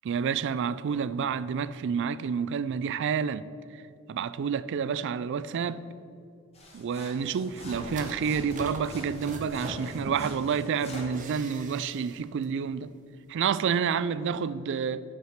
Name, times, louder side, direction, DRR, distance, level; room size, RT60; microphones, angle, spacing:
voice 1, 0.0-3.5 4.1-5.9 6.7-12.9 13.3-15.0, right 6 dB, 55° right, 0.3 m, -29 dB
sound 1, 6.5-11.2, left 1 dB, 30° left, 1.7 m, -47 dB
sound 2, 7.4-10.5 11.1-12.2 12.4-12.5, right 1 dB, 35° right, 0.8 m, -41 dB
7.5 x 5.8 x 6.5 m
head